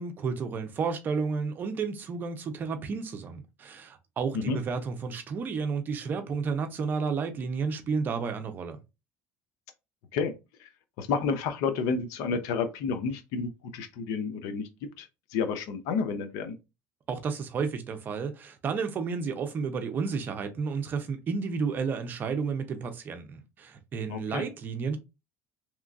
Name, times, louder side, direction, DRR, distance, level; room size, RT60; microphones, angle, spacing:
voice 1, 0.0-8.8 17.1-25.0, right 5 dB, 35° right, 0.6 m, -32 dB
voice 2, 11.0-14.7 15.0-16.6 24.1-24.5, left 5 dB, 75° left, 0.6 m, -30 dB
3.0 x 2.4 x 2.4 m
cardioid pair, 130°, 6 cm